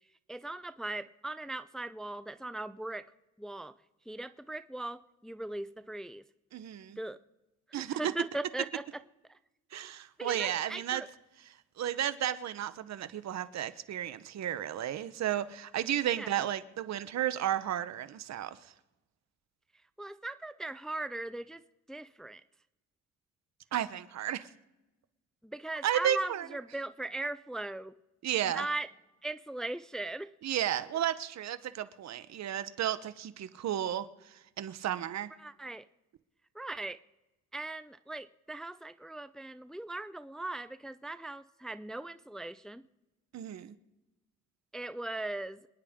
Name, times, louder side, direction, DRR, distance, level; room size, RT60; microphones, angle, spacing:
voice 1, 0.3-3.1 3.4-3.7 4.1-6.2 7.0-7.2 7.7-8.8 9.3-9.4 10.2-11.1 16.2-16.5 20.0-21.6 21.9-22.4 25.4-27.9 28.6-28.9 29.2-30.3 35.4-35.8 36.5-37.0 37.5-42.8 44.7-45.6, right 2 dB, ahead, 0.4 m, -39 dB
voice 2, 6.5-7.0 7.7-8.1 9.7-11.0 11.8-18.6 23.7-24.5 25.8-26.5 28.2-28.7 30.4-35.3 43.3-43.7, right 11 dB, 60° right, 0.9 m, -33 dB
26.5 x 10.0 x 3.7 m
cardioid pair, 90°, 30 cm